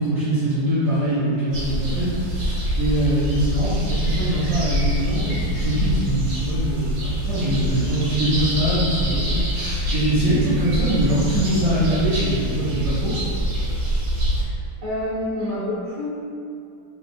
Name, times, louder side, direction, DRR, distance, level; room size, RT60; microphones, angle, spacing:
voice 1, 0.0-13.1, right 1 dB, 55° right, -12 dB, 1.1 m, -23 dB
sound 1, 1.5-14.4, equal, 80° right, 1.8 m, -25 dB
voice 2, 14.4-16.1, left 1 dB, 20° right, -11 dB, 1.3 m, -28 dB
4.1 x 2.4 x 4.0 m, 2.5 s
omnidirectional pair, 2.0 m